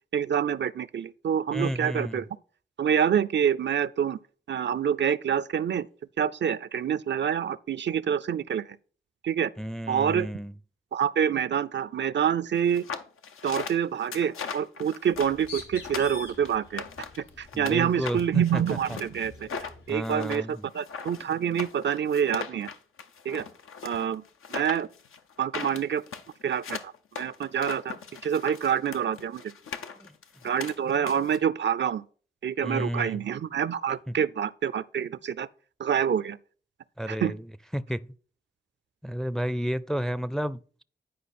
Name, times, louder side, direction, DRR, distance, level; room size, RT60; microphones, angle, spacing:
voice 1, 0.1-2.3 2.8-4.2 4.5-5.9 6.2-8.7 9.2-9.5 9.9-10.3 10.9-12.8 13.4-16.8 17.4-22.7 23.3-23.5 23.8-24.2 24.5-24.9 25.4-26.0 26.4-28.0 28.2-29.5 30.4-32.0 32.4-35.5 35.8-36.4 37.1-37.3, right 8 dB, 60° right, 0.4 m, -27 dB
voice 2, 1.5-2.2 9.6-10.5 17.5-18.6 18.9-19.0 19.9-20.6 30.0-30.1 32.6-33.2 34.1-34.2 37.0-37.4 37.7-38.1 39.0-40.8, equal, ahead, 0.4 m, -31 dB
sound 1, 12.7-17.8 18.1-31.4, left 6 dB, 90° left, 0.7 m, -39 dB
Bird, 15.1-19.9, left 3 dB, 70° left, 3.7 m, -47 dB
10.0 x 4.7 x 4.2 m
cardioid pair, 40°, 21 cm